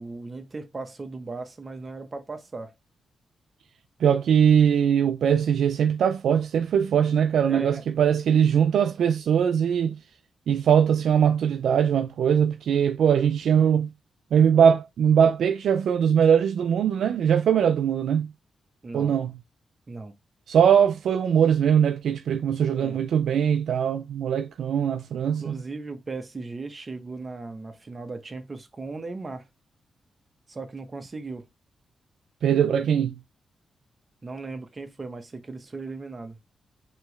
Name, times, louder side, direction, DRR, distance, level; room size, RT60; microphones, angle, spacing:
voice 1, 0.0-2.7 7.5-7.8 18.8-19.2 19.9-20.1 22.7-23.0 25.2-29.5 30.5-31.4 34.2-36.4, right 3 dB, 35° right, 1.0 m, -37 dB
voice 2, 4.0-10.0 10.5-13.9 14.3-18.3 18.9-19.3 20.5-25.6 32.4-33.2, right 8 dB, 80° right, 0.3 m, -21 dB
4.4 x 3.0 x 3.3 m
cardioid pair, 65°, 0 cm